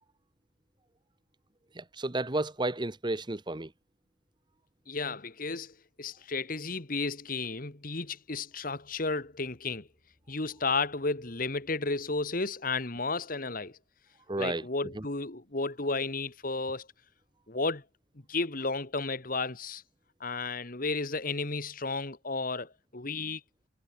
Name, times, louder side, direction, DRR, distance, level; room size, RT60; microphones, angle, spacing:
voice 1, 1.8-3.7 14.3-14.6, right 2 dB, 25° right, 1.0 m, -32 dB
voice 2, 4.9-9.9 10.3-13.8 14.4-16.9 17.5-17.8 18.3-19.8 20.2-23.4, left 3 dB, 45° left, 1.7 m, -33 dB
head